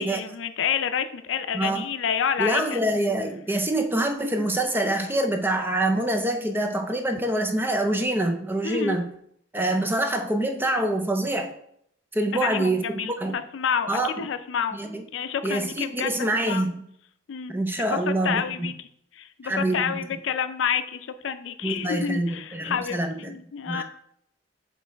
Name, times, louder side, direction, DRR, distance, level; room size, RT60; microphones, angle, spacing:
voice 1, 0.0-2.8 8.6-9.0 12.4-14.8 15.1-16.7 17.3-17.5 17.9-18.7 19.2-23.8, left 7 dB, 80° left, 11 dB, 0.4 m, -29 dB
voice 2, 1.5-1.9 2.4-9.1 9.5-11.5 12.1-13.4 13.9-14.3 14.7-15.0 15.4-16.9 17.5-18.7 19.4-20.0 21.6-23.4 23.7-23.8, right 1 dB, 10° right, 5 dB, 0.5 m, -26 dB
6.7 x 3.1 x 4.5 m, 0.71 s
head